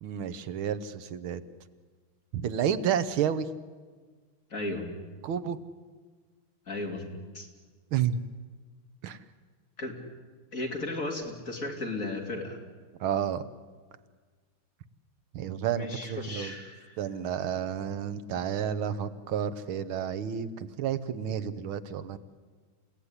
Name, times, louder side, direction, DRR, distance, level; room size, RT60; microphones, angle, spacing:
voice 1, 0.0-1.4 2.3-3.5 5.2-5.6 7.9-8.2 9.0-9.2 13.0-13.4 15.3-16.5 17.0-22.2, right 8 dB, 80° right, 13 dB, 1.8 m, -30 dB
voice 2, 4.5-4.9 6.7-7.5 9.8-10.0 10.5-12.6 15.8-17.0, left 2 dB, 40° left, 2 dB, 3.6 m, -35 dB
29.5 x 17.0 x 9.9 m, 1.4 s
omnidirectional pair, 2.2 m